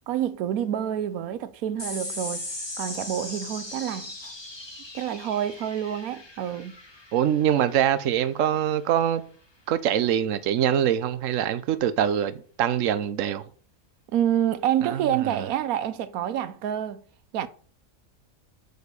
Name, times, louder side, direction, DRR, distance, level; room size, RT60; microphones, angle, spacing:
voice 1, 0.1-2.5 2.8-4.3 4.9-6.7 14.1-17.0 17.3-17.5, right 10 dB, 90° right, 1.1 m, -27 dB
sound 1, 1.8-8.6, left 2 dB, 20° left, 1.7 m, -39 dB
voice 2, 7.1-9.2 9.7-13.4 14.8-15.5, right 10 dB, 70° right, 1.1 m, -24 dB
8.0 x 5.4 x 6.8 m
omnidirectional pair, 1.5 m